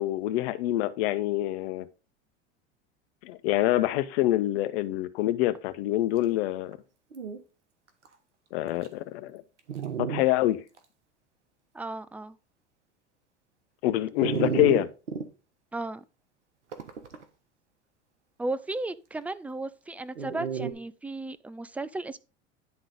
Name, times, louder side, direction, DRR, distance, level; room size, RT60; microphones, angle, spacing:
voice 1, 0.0-1.9 3.2-6.8 8.5-9.4 10.0-10.6 13.8-14.9, left 15 dB, 60° left, 0.9 m, -26 dB
Dog, 6.7-6.8 7.1-7.4 8.1-8.2 8.8-8.9 9.7-10.2 10.8-10.9 14.2-15.3 16.7-17.2 20.2-20.7, right 7 dB, 85° right, 1.3 m, -31 dB
voice 2, 11.7-12.4 15.7-16.0 18.4-22.2, right 2 dB, 5° right, 0.3 m, -35 dB
10.5 x 3.9 x 5.0 m
hypercardioid pair, 85°, 34 cm